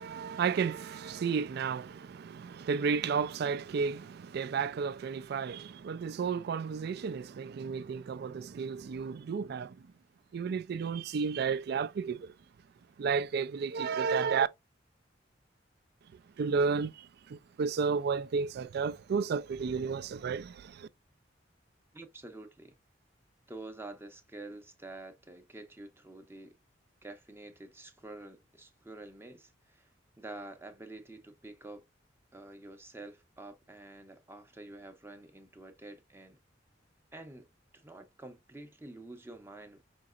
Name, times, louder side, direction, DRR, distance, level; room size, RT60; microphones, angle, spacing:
voice 1, 0.0-9.8 10.3-12.3 13.0-14.5 16.4-20.9, right 5 dB, 60° right, 0.3 m, -32 dB
voice 2, 21.9-22.8 23.5-26.6 27.0-31.8 32.3-36.4 37.1-37.5 37.7-39.8, right 2 dB, 15° right, 0.6 m, -48 dB
5.2 x 2.8 x 2.4 m
head